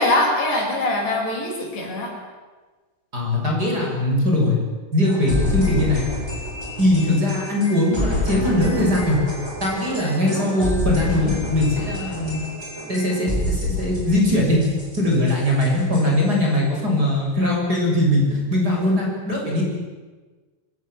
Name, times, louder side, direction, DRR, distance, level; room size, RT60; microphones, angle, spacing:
voice 1, 0.0-2.1 10.3-10.7, left 1 dB, 80° left, 0 dB, 8.1 m, -23 dB
voice 2, 3.1-4.6 4.9-6.1 6.8-9.2 9.6-12.4 12.9-14.6 15.0-19.6, left 1 dB, 20° right, -1 dB, 7.3 m, -20 dB
sound 1, 5.0-16.4, left 1 dB, 5° right, 7.3 m, -28 dB
25.5 x 25.5 x 7.6 m, 1.3 s
omnidirectional pair, 4.8 m